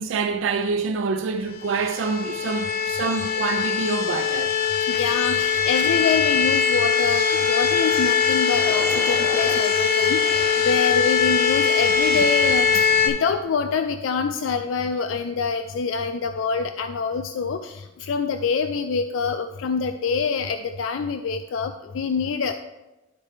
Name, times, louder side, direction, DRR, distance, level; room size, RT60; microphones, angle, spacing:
voice 1, 0.0-4.6, right 4 dB, 80° right, 0.4 m, -26 dB
sound 1, 1.5-13.1, left 6 dB, 55° left, 1.0 m, -21 dB
voice 2, 4.9-22.5, left 5 dB, 90° left, 0.3 m, -26 dB
sound 2, 7.6-8.0 8.5-9.6 10.2-11.2 11.8-12.2, right 1 dB, 10° right, 0.7 m, -38 dB
12.0 x 4.3 x 3.2 m
head